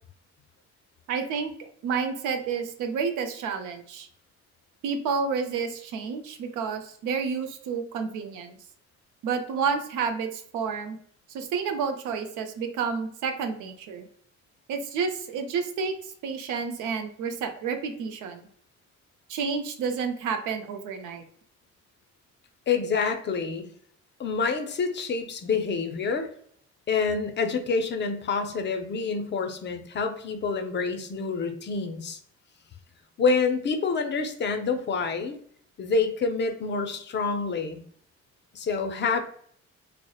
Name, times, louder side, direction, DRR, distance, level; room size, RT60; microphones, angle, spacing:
voice 1, 1.1-1.5 1.8-4.1 4.8-8.6 9.2-11.0 11.3-14.1 14.7-18.4 19.3-21.2, right 5 dB, 90° right, 7 dB, 0.5 m, -30 dB
voice 2, 22.7-23.7 24.2-26.3 26.9-32.2 33.2-35.4 35.8-37.8 38.5-39.2, left 4 dB, 40° left, 7 dB, 0.4 m, -27 dB
2.7 x 2.0 x 2.3 m, 0.63 s
cardioid pair, 90°, 30 cm